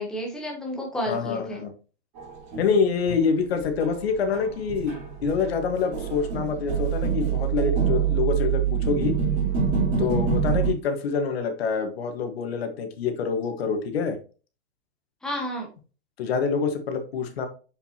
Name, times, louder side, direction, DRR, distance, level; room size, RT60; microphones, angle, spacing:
voice 1, 0.0-1.6 15.2-15.7, left 1 dB, ahead, -1 dB, 0.8 m, -31 dB
voice 2, 1.1-1.7 2.6-9.1 10.0-14.2 16.2-17.5, left 5 dB, 65° left, 7 dB, 1.5 m, -26 dB
sound 1, 2.2-4.0 4.3-10.7, right 7 dB, 30° right, 3.8 m, -26 dB
7.2 x 5.2 x 2.8 m, 0.36 s
supercardioid pair, 175°, 33 cm